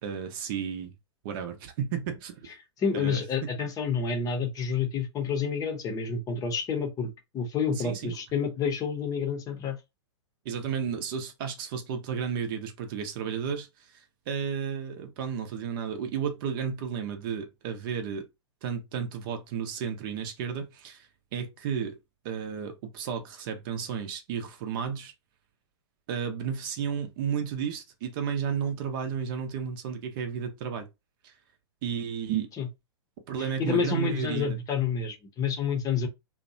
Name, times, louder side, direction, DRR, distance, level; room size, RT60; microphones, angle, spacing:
voice 1, 0.0-0.9 1.2-2.5 2.9-3.2 7.7-8.1 10.4-13.7 14.3-18.3 18.6-21.1 21.3-22.0 22.2-25.1 26.1-30.9 31.2-31.3 31.8-32.5 33.3-34.6, right 7 dB, 50° right, 0.7 m, -32 dB
voice 2, 2.8-9.8 32.6-32.7 33.4-36.1, left 6 dB, 25° left, 0.7 m, -29 dB
2.7 x 2.1 x 2.6 m
hypercardioid pair, 115°, 15 cm